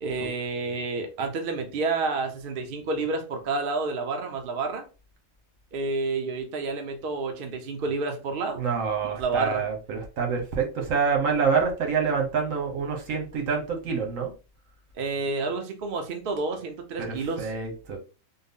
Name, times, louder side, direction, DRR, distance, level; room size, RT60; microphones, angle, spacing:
voice 1, 0.0-4.8 5.7-8.6 9.0-9.6 15.0-17.5, right 3 dB, 55° right, 0.7 m, -29 dB
voice 2, 8.6-14.3 17.0-18.0, right 5 dB, 80° right, 1.3 m, -27 dB
3.6 x 2.0 x 3.5 m
omnidirectional pair, 1.4 m